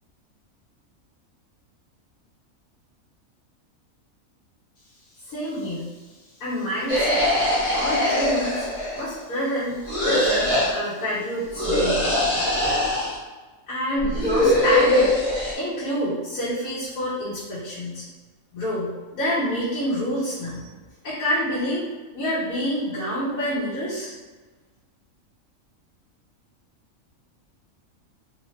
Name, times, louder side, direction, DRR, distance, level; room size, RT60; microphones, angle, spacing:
voice 1, 5.2-5.9 6.4-7.4 7.7-8.7 8.9-12.0 13.7-15.1 15.6-18.0 18.5-20.6 21.0-21.9 22.1-24.1, equal, 80° left, -11 dB, 1.5 m, -27 dB
sound 1, 6.9-9.2 9.9-10.7 11.5-13.2 14.0-15.5, left 1 dB, 25° left, 1.3 m, -22 dB
3.3 x 2.9 x 3.1 m, 1.3 s
omnidirectional pair, 1.4 m